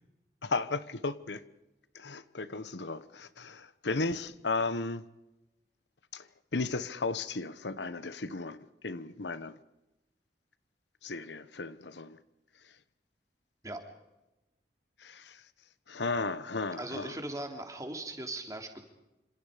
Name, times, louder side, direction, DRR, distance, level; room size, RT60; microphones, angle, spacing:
voice 1, 0.4-1.4 1.9-5.0 6.1-6.3 6.5-8.6 8.8-9.6 11.0-12.2 15.0-15.4 15.9-17.1, left 3 dB, 90° left, 1.2 m, -35 dB
voice 2, 16.8-18.8, right 1 dB, 20° right, 3.1 m, -39 dB
28.0 x 26.5 x 5.1 m
head